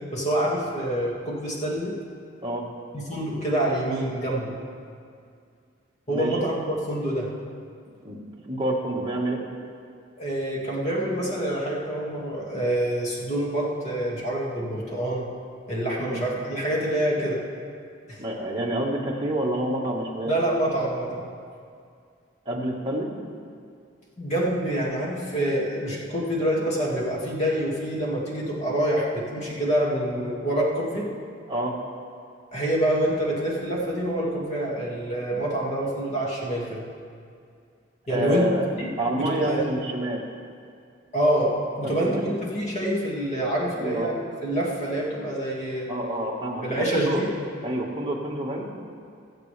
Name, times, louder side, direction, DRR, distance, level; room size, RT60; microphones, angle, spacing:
voice 1, 0.1-2.0 2.9-4.5 6.1-7.3 10.2-15.3 15.7-17.4 18.1-18.2 20.3-21.2 24.2-31.1 32.5-36.8 38.1-38.5 38.8-39.6 41.1-45.9 46.6-47.3, right 1 dB, 35° left, -4 dB, 2.1 m, -26 dB
voice 2, 6.1-6.5 8.0-8.2 8.4-9.4 16.0-16.2 18.2-20.3 22.4-23.1 31.5-31.7 38.1-38.7 39.0-40.2 41.8-42.3 43.8-44.1 45.9-47.2 47.6-48.7, right 1 dB, 25° right, -3 dB, 1.6 m, -28 dB
23.0 x 7.8 x 3.4 m, 2.3 s
head